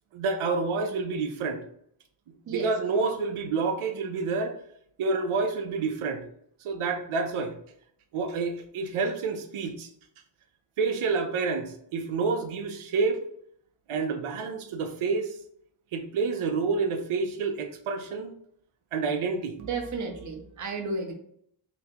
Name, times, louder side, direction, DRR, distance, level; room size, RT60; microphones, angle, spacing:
voice 1, 0.1-1.6 2.5-4.6 5.0-6.2 6.6-7.6 8.1-9.9 10.8-13.2 13.9-15.3 15.9-18.3 18.9-19.6, right 4 dB, 90° right, 6 dB, 0.6 m, -28 dB
voice 2, 19.6-21.1, right 4 dB, 40° right, 2 dB, 0.6 m, -33 dB
2.9 x 2.8 x 3.5 m, 0.68 s
wide cardioid pair, 175°, 49 cm